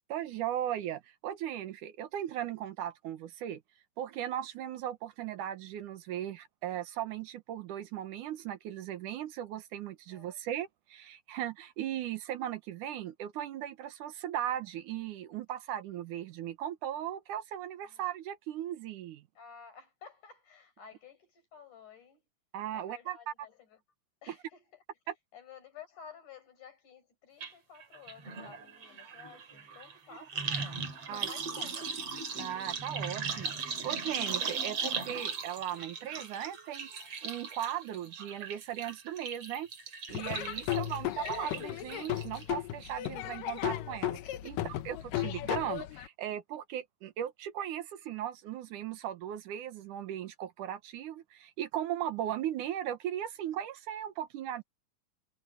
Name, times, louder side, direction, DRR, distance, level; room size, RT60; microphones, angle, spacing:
voice 1, 0.1-3.6 4.0-19.2 22.5-23.2 24.3-24.4 31.1-31.3 32.3-36.9 37.2-39.7 40.1-54.6, right 11 dB, 75° right, 2.6 m, -37 dB
voice 2, 10.1-10.4 17.8-18.0 19.3-22.2 22.7-23.8 24.2-24.8 25.3-30.8 31.1-32.0 44.6-44.8, left 7 dB, 70° left, 6.4 m, -53 dB
sound 1, 27.4-27.5 27.8-42.4 42.8-43.3 43.6-43.7, right 5 dB, 50° right, 3.8 m, -38 dB
Laughter / Drum, 40.1-46.1, left 14 dB, 90° left, 2.7 m, -35 dB
omnidirectional pair, 3.7 m